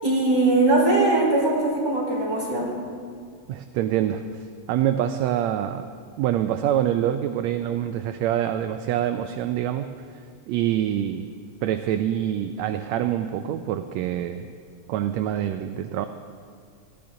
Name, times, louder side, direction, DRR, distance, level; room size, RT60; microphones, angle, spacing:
voice 1, 0.0-2.7, right 2 dB, 10° right, -5 dB, 3.9 m, -21 dB
voice 2, 3.5-5.8 6.2-9.9 10.1-11.3 11.6-14.4 14.9-16.1, right 11 dB, 80° right, 8 dB, 1.7 m, -25 dB
19.0 x 15.0 x 3.9 m, 2.1 s
omnidirectional pair, 3.4 m